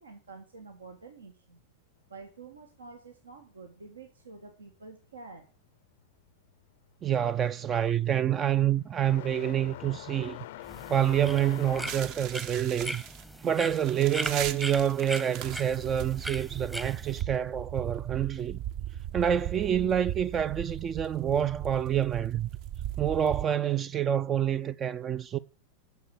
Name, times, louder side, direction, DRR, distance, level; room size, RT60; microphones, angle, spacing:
voice 1, 0.0-1.6 2.1-5.4, right 4 dB, 70° right, 1.7 m, -48 dB
sound 1, 6.4-6.7 7.0-15.3 15.6-16.7 17.7-17.8 18.6-18.7 20.4-20.5, left 15 dB, 55° left, 0.5 m, -45 dB
voice 2, 7.0-10.4 10.9-13.0 13.4-18.6 19.1-22.5 23.0-25.4, right 9 dB, 25° right, 0.5 m, -27 dB
sound 2, 10.6-17.2, right 1 dB, 5° right, 1.0 m, -39 dB
sound 3, 11.9-23.4, right 11 dB, 40° right, 1.0 m, -38 dB
9.4 x 7.1 x 8.8 m
figure-of-eight pair, 90°, 0 cm